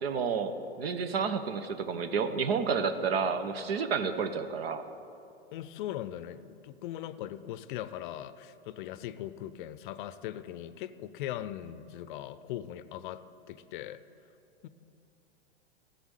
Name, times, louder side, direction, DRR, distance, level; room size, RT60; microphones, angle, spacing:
voice 1, 0.0-4.8, right 5 dB, 65° right, 10 dB, 1.0 m, -30 dB
voice 2, 5.5-14.0 14.6-14.7, left 12 dB, 50° left, 14 dB, 0.6 m, -40 dB
14.5 x 7.0 x 9.0 m, 2.7 s
hypercardioid pair, 105°, 33 cm